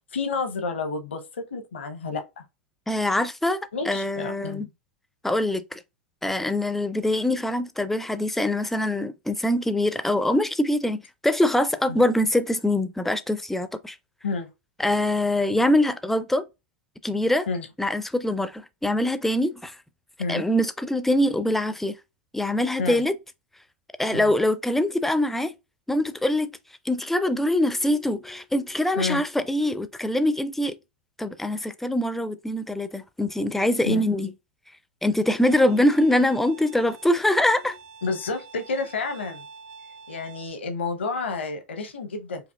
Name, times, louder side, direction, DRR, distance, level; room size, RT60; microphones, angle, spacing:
voice 1, 0.1-2.4 3.7-4.6 11.9-12.0 14.2-14.5 17.5-17.7 20.2-20.4 22.8-23.0 24.1-24.3 29.0-29.2 33.8-34.1 38.0-39.5 40.1-42.5, left 4 dB, 75° left, 0.7 m, -30 dB
voice 2, 2.9-3.6 3.9-4.7 5.2-5.8 6.2-14.0 14.8-16.4 17.0-17.5 17.8-19.8 20.3-22.0 22.3-23.1 24.0-25.5 25.9-26.5 26.9-30.8 31.2-34.3 35.0-37.8, left 1 dB, 5° left, 0.4 m, -23 dB
Bowed string instrument, 35.5-40.5, right 5 dB, 40° right, 0.6 m, -47 dB
4.9 x 2.6 x 2.3 m
figure-of-eight pair, 90°, 6 cm